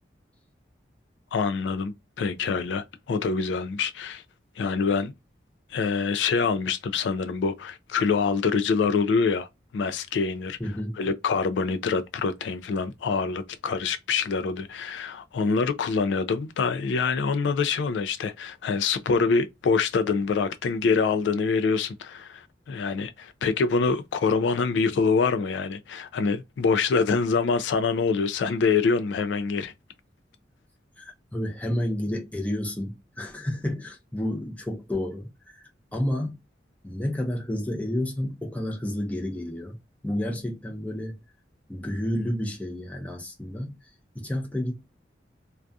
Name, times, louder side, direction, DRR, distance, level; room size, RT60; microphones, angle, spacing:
voice 1, 1.3-4.2 4.6-5.1 5.7-9.5 9.7-10.6 11.0-29.7, left 5 dB, 75° left, 0.3 m, -25 dB
voice 2, 10.6-11.0 31.0-36.4 36.8-39.8 40.0-41.2 41.7-43.7 44.1-44.7, left 1 dB, 10° left, 0.6 m, -30 dB
2.3 x 2.3 x 2.5 m
head